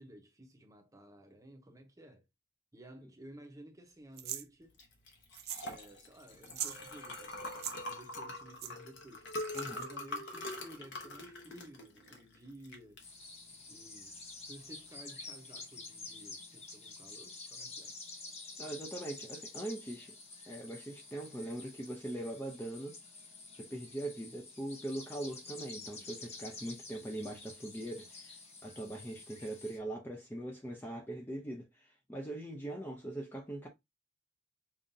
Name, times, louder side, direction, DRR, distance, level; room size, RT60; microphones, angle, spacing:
voice 1, 0.0-2.3 2.7-4.8 5.6-9.3 9.7-13.0 13.7-18.0, right 1 dB, 15° right, 0.8 m, -54 dB
sound 1, 4.2-4.5 5.3-5.7 6.0-6.1 6.4-6.8 7.5-7.8 8.6-8.7 9.5-9.9, right 11 dB, 50° right, 0.4 m, -40 dB
Liquid, 4.7-14.9, left 1 dB, 60° left, 1.0 m, -44 dB
voice 2, 9.5-9.9 18.6-20.2 20.5-23.0 23.6-33.7, right 1 dB, 10° left, 0.5 m, -41 dB
sound 2, 13.0-29.8, left 3 dB, 35° left, 1.0 m, -49 dB
5.3 x 2.5 x 2.6 m
head